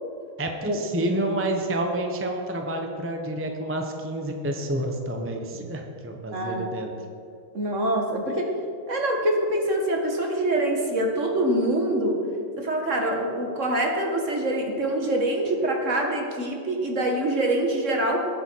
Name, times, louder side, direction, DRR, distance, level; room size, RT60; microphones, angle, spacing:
voice 1, 0.4-6.9, right 1 dB, 15° right, 2 dB, 0.5 m, -29 dB
voice 2, 6.3-6.7 7.5-8.6 8.9-12.2 12.6-18.3, right 1 dB, 40° right, 2 dB, 1.8 m, -25 dB
21.0 x 9.0 x 4.7 m, 2.4 s
omnidirectional pair, 2.3 m